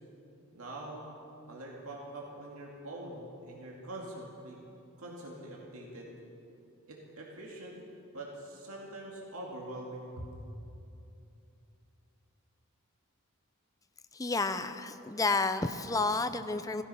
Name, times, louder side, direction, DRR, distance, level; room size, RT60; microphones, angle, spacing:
voice 1, 0.5-1.1 1.5-4.6 5.0-6.1 6.9-7.8 8.1-10.2, right 1 dB, 75° right, -2 dB, 2.3 m, -44 dB
voice 2, 14.1-16.8, left 3 dB, 15° left, 10 dB, 0.5 m, -31 dB
16.5 x 15.0 x 5.6 m, 2.8 s
head